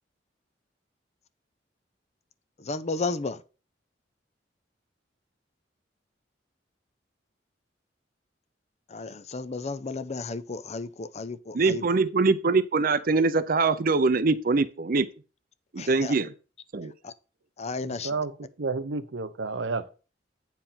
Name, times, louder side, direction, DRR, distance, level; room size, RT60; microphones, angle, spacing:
voice 1, 2.6-3.4 8.9-11.8 15.8-16.1 17.0-17.1 17.6-18.1, left 3 dB, 35° left, 0.6 m, -33 dB
voice 2, 11.5-15.1 15.7-16.3 16.7-16.9, right 3 dB, 50° right, 0.6 m, -23 dB
voice 3, 17.8-19.9, right 4 dB, 85° right, 0.8 m, -31 dB
9.2 x 4.5 x 5.6 m
head